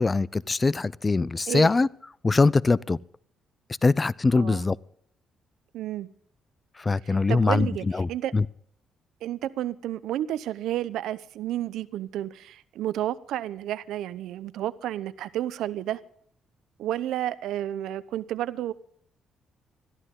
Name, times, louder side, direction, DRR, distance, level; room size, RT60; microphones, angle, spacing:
voice 1, 0.0-1.9 2.2-3.0 3.8-4.8 6.8-8.4, left 3 dB, 25° left, 0.5 m, -22 dB
voice 2, 4.3-4.7 5.7-6.1 7.0-8.3 9.2-16.0 16.8-18.7, right 12 dB, 85° right, 0.8 m, -31 dB
21.5 x 13.5 x 3.8 m
cardioid pair, 90°, 0 cm